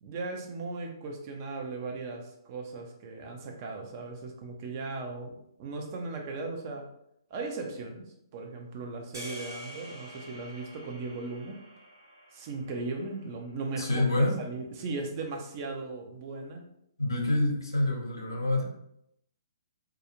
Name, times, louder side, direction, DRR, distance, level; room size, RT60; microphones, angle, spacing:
voice 1, 0.0-6.8 7.3-8.1 8.3-11.6 12.3-14.0 14.4-16.6, right 3 dB, 35° right, 2 dB, 0.5 m, -37 dB
sound 1, 9.1-13.5, equal, 70° right, 0.9 m, -47 dB
voice 2, 13.8-14.4 17.0-18.6, left 2 dB, 75° left, 1 dB, 0.7 m, -27 dB
2.3 x 2.3 x 2.9 m, 0.76 s
figure-of-eight pair, 125°, 2 cm